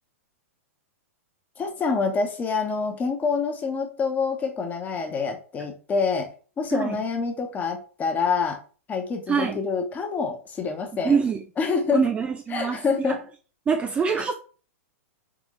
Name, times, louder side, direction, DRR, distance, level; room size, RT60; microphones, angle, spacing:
voice 1, 1.6-6.3 6.6-8.6 8.9-11.2 11.6-12.0 12.5-13.2, left 5 dB, 20° left, 1.0 m, -26 dB
voice 2, 9.3-9.6 11.0-11.4 11.9-13.2 13.7-14.3, right 6 dB, 15° right, 0.3 m, -24 dB
3.7 x 3.6 x 3.1 m
hypercardioid pair, 105°, 8 cm